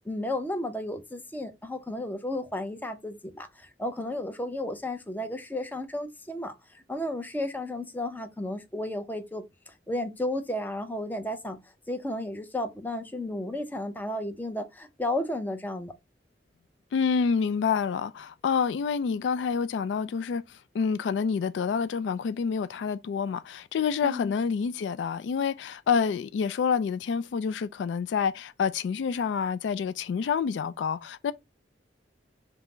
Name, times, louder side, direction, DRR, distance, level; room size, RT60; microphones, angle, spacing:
voice 1, 0.0-11.6 11.9-15.9 24.0-24.4, left 1 dB, 10° left, 0.5 m, -33 dB
voice 2, 16.9-31.3, left 6 dB, 80° left, 0.3 m, -28 dB
5.5 x 2.0 x 3.7 m
head